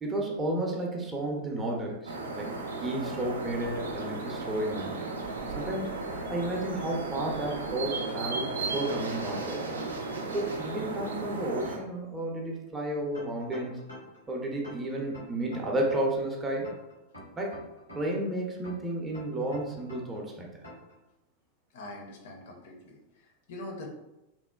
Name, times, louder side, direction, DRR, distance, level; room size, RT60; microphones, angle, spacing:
voice 1, 0.0-5.1 5.5-9.6 10.3-13.8 14.3-16.7 17.4-17.6 17.9-20.5, right 1 dB, 15° right, -1 dB, 0.5 m, -32 dB
sound 1, 2.1-11.8, right 3 dB, 70° right, 0.3 m, -35 dB
sound 2, 13.1-14.2 14.6-16.2 16.6-18.2 18.6-20.2 20.6-21.0, left 1 dB, 90° left, 0.9 m, -47 dB
voice 2, 21.7-23.9, left 2 dB, 55° left, 1 dB, 0.5 m, -43 dB
2.8 x 2.1 x 2.2 m, 0.95 s
figure-of-eight pair, 90°, 0 cm